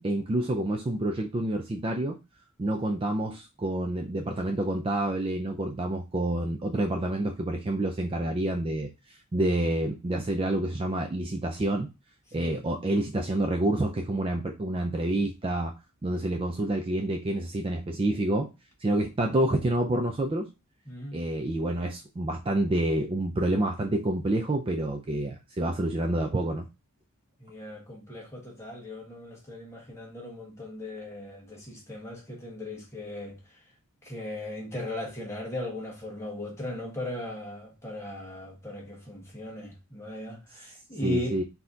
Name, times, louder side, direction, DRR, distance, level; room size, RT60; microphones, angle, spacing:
voice 1, 0.0-2.2 2.6-11.9 12.3-15.7 16.0-18.5 18.8-20.5 21.1-26.7 41.0-41.4, right 1 dB, 25° right, 0.4 m, -28 dB
voice 2, 20.9-21.2 27.4-33.4 34.0-41.4, left 1 dB, 10° left, 1.3 m, -38 dB
4.1 x 2.8 x 3.8 m
head